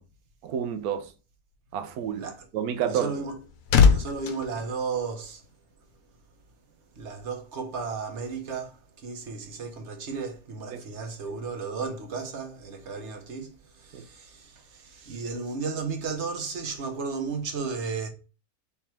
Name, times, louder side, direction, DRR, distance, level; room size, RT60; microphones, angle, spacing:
voice 1, 0.4-1.1 1.7-2.3 2.5-3.1 10.7-10.8 13.9-14.0, right 8 dB, 75° right, 1.1 m, -29 dB
voice 2, 2.2-2.5 2.8-3.4 3.9-5.4 6.9-18.1, right 5 dB, 50° right, 1.1 m, -34 dB
sound 1, 3.1-5.6 5.9-6.2, left 6 dB, 70° left, 1.1 m, -24 dB
3.5 x 3.4 x 4.4 m
omnidirectional pair, 1.6 m